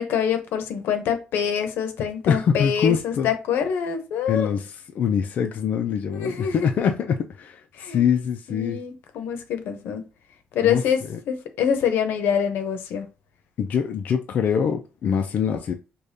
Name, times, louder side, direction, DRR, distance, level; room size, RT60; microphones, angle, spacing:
voice 1, 0.0-4.5 6.1-6.5 7.7-8.0 8.5-10.0 10.5-11.0 11.3-13.1, left 8 dB, 90° left, 0.7 m, -25 dB
voice 2, 2.3-3.3 4.3-8.8 10.6-11.2 13.6-15.7, left 7 dB, 50° left, 0.4 m, -24 dB
4.9 x 2.2 x 2.7 m
cardioid pair, 175°, 4 cm